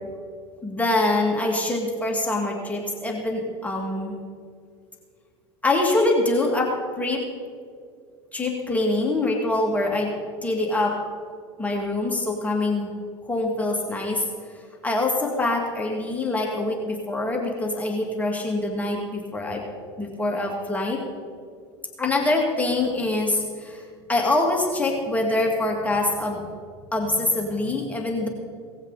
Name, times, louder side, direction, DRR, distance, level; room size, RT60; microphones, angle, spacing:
voice 1, 0.6-4.2 5.6-7.2 8.3-10.1 10.4-11.0 11.6-13.0 13.2-14.2 14.8-19.6 20.0-21.0 22.0-23.8 24.1-26.4 26.9-28.3, left 2 dB, 10° left, 0 dB, 2.5 m, -24 dB
18.5 x 15.0 x 4.2 m, 2.1 s
hypercardioid pair, 90°, 14 cm